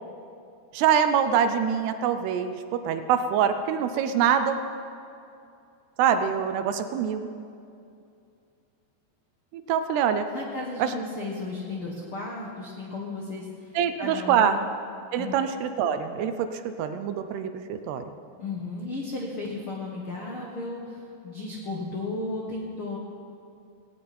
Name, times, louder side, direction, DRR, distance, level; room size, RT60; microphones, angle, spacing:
voice 1, 0.7-4.6 6.0-7.3 9.5-10.3 10.8-10.9 13.8-14.6 15.1-18.0, right 8 dB, 80° right, 9 dB, 2.6 m, -25 dB
voice 2, 10.3-14.5 15.1-15.3 18.4-23.0, left 2 dB, 75° left, -2 dB, 1.2 m, -34 dB
18.5 x 17.5 x 4.3 m, 2.5 s
omnidirectional pair, 5.0 m